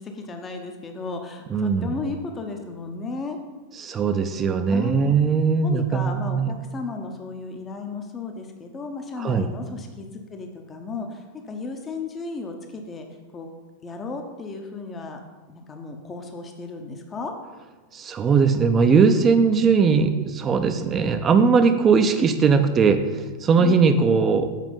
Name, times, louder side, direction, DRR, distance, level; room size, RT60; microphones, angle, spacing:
voice 1, 0.0-3.4 4.7-5.2 5.6-13.1 13.3-13.5 13.8-15.2 15.5-17.3 23.6-23.8, left 3 dB, 20° left, 4 dB, 0.8 m, -34 dB
voice 2, 1.5-1.9 3.8-6.5 9.2-9.5 17.9-23.0 23.4-24.5, right 5 dB, 25° right, 8 dB, 0.6 m, -19 dB
7.4 x 4.9 x 5.3 m, 1.3 s
figure-of-eight pair, 90°, 0 cm